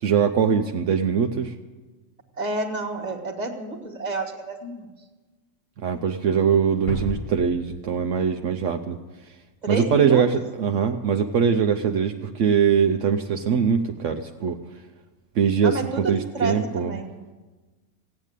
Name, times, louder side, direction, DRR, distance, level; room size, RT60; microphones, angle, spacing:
voice 1, 0.0-1.5 5.8-9.0 9.7-14.6 15.4-16.9, right 7 dB, 70° right, 5 dB, 1.0 m, -22 dB
voice 2, 2.4-4.9 9.6-10.2 15.6-17.2, right 2 dB, 35° right, 2 dB, 1.7 m, -29 dB
sound 1, 6.9-9.5, left 1 dB, 70° left, 2.2 m, -35 dB
16.0 x 9.0 x 8.2 m, 1.3 s
omnidirectional pair, 1.3 m